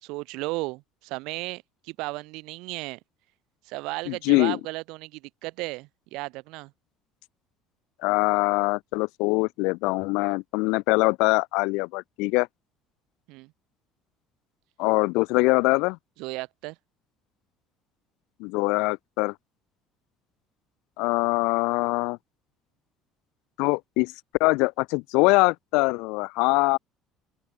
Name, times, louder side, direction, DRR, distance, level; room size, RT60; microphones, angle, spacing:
voice 1, 0.0-3.0 3.7-6.7 13.3-13.5 16.2-16.8, right 23 dB, 75° right, 4.1 m, -35 dB
voice 2, 4.1-4.6 8.0-12.5 14.8-16.0 18.4-19.3 21.0-22.2 23.6-24.1 24.4-26.8, left 27 dB, 80° left, 3.7 m, -23 dB
open air
cardioid pair, 130°, 0 cm